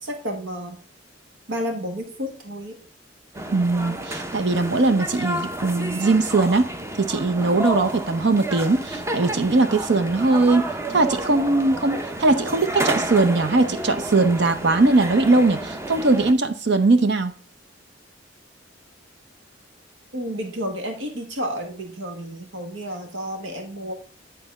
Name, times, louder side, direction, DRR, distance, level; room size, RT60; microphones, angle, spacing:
voice 1, 0.0-0.8 1.5-2.8 20.1-23.9, equal, 80° right, 1.5 m, -31 dB
sound 1, 3.3-16.3, right 1 dB, 15° right, 0.6 m, -31 dB
voice 2, 3.5-6.7 7.0-17.3, right 3 dB, 60° right, 0.7 m, -20 dB
10.5 x 4.0 x 5.3 m
head